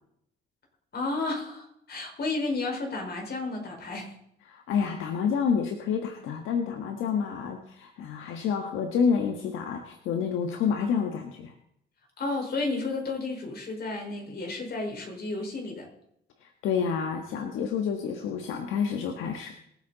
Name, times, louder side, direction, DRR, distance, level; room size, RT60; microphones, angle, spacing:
voice 1, 0.9-4.1 12.2-15.9, left 3 dB, 55° left, 1 dB, 4.8 m, -32 dB
voice 2, 4.5-11.5 16.6-19.5, left 6 dB, 90° left, 4 dB, 1.4 m, -28 dB
22.5 x 8.4 x 4.0 m, 0.74 s
cardioid pair, 90°, 20 cm